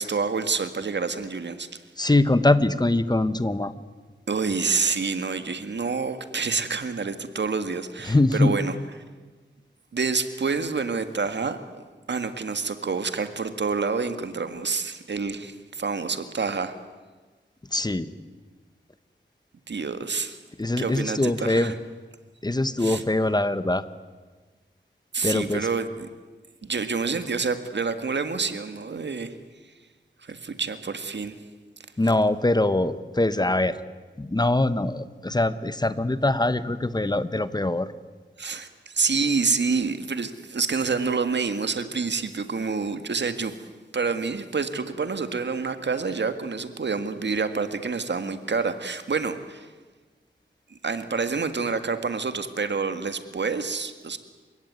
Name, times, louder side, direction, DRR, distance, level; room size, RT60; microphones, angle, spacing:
voice 1, 0.0-1.8 4.3-8.7 9.9-16.8 19.7-20.4 20.8-21.8 22.8-23.0 25.1-26.1 26.6-29.4 30.2-31.4 38.4-43.5 43.9-49.7 50.7-54.2, right 4 dB, 70° right, 9 dB, 1.8 m, -28 dB
voice 2, 2.0-3.7 8.1-8.5 17.7-18.1 20.6-21.7 22.4-23.8 25.2-25.7 32.0-33.8 34.2-37.9, left 2 dB, 20° left, 13 dB, 1.1 m, -23 dB
29.5 x 17.0 x 9.6 m, 1.4 s
wide cardioid pair, 80°, 19 cm